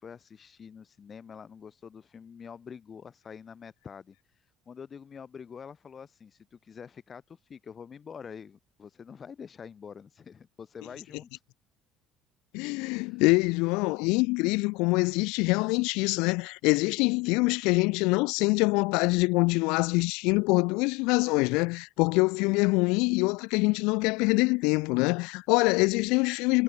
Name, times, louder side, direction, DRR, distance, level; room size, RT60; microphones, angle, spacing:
voice 1, 0.0-4.2 4.7-11.3 12.9-13.2, left 6 dB, 40° left, 4.0 m, -46 dB
voice 2, 12.5-26.6, left 26 dB, 75° left, 0.4 m, -25 dB
hypercardioid pair, 70°, 0 cm